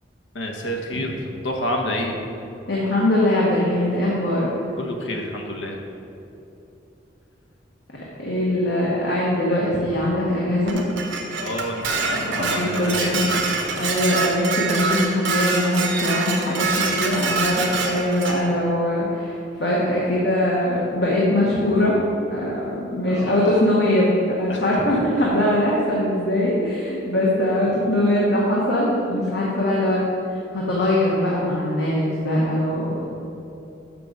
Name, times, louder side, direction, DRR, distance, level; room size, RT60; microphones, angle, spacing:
voice 1, 0.3-1.1 1.4-2.1 4.8-5.8 11.4-13.6 23.1-23.5 24.5-24.6 24.9-25.0, left 1 dB, 80° left, 2 dB, 1.1 m, -29 dB
voice 2, 2.7-4.5 8.2-10.8 12.0-13.2 13.8-16.7 16.9-22.0 22.3-30.0 30.5-33.0, left 1 dB, 60° left, -5 dB, 1.1 m, -21 dB
Dishes pots and pans, 10.7-18.4, right 4 dB, 80° right, 1.0 m, -25 dB
6.7 x 6.2 x 5.2 m, 2.9 s
head